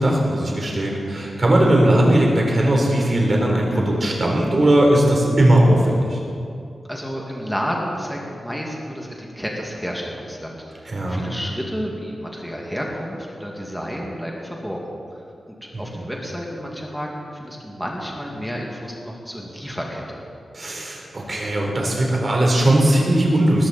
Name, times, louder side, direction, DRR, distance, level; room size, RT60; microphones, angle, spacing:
voice 1, 0.0-6.2 10.9-11.2 15.7-16.0 20.5-23.7, right 1 dB, 40° right, -1 dB, 3.8 m, -18 dB
voice 2, 6.9-20.2, equal, ahead, -2 dB, 2.1 m, -31 dB
19.5 x 14.5 x 4.2 m, 2.5 s
wide cardioid pair, 120°, 0 cm